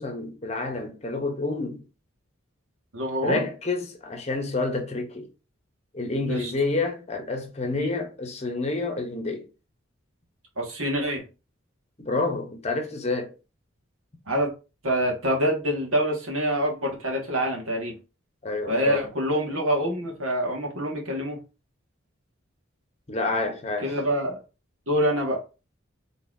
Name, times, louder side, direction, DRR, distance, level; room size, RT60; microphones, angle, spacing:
voice 1, 0.0-1.8 3.2-5.3 5.9-9.5 12.0-13.3 18.4-19.1 23.1-23.9, left 3 dB, 30° left, 0.8 m, -28 dB
voice 2, 2.9-3.5 6.3-6.5 7.7-7.9 10.6-11.2 14.3-14.5 14.8-17.9 18.7-21.4 23.8-24.4 24.9-25.4, equal, 85° right, 1.6 m, -26 dB
4.1 x 3.4 x 2.6 m
head